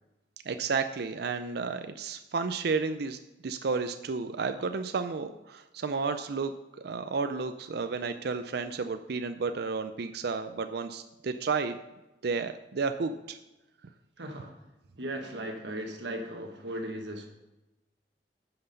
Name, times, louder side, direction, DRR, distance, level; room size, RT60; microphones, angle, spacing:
voice 1, 0.5-11.8 12.2-13.4, right 4 dB, 65° right, 9 dB, 0.5 m, -32 dB
voice 2, 14.2-14.7 15.0-17.3, right 1 dB, 80° right, 3 dB, 1.2 m, -37 dB
9.8 x 5.9 x 5.2 m, 0.99 s
head